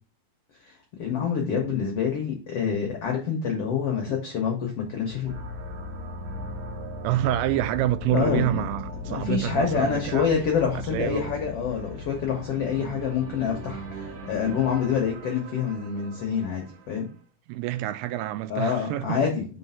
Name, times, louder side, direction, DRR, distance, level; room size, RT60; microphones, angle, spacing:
voice 1, 0.6-5.3 8.1-8.6 9.0-17.1 18.5-19.5, left 7 dB, 80° left, 1.3 m, -27 dB
sound 1, 5.2-17.2, equal, 70° right, 2.0 m, -38 dB
voice 2, 7.0-10.3 10.7-11.4 12.8-13.0 17.5-19.3, right 14 dB, 85° right, 2.5 m, -28 dB
5.4 x 4.2 x 5.5 m
omnidirectional pair, 4.5 m